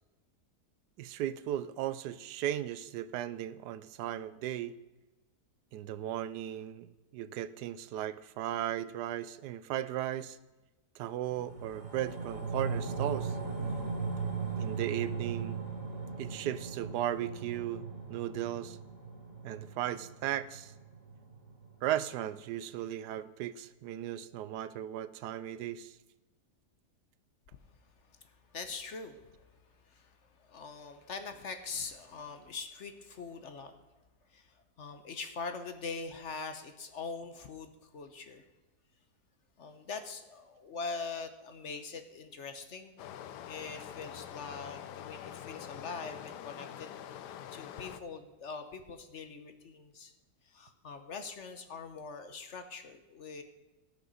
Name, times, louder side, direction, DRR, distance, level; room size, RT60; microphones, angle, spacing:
voice 1, 1.0-4.8 5.7-10.4 11.0-13.4 14.6-15.6 16.2-18.8 19.4-20.7 21.8-26.0, right 12 dB, 90° right, 15 dB, 1.2 m, -36 dB
sound 1, 11.3-21.9 22.2-22.3, right 5 dB, 70° right, 2.9 m, -38 dB
voice 2, 28.0-29.5 29.8-33.7 34.3-38.4 39.6-43.0 43.5-46.9 47.3-50.1 50.4-53.4, left 4 dB, 55° left, 8 dB, 1.0 m, -43 dB
Stream, 43.0-48.0, left 10 dB, 90° left, 1.3 m, -45 dB
17.5 x 6.9 x 4.1 m, 1.1 s
omnidirectional pair, 1.7 m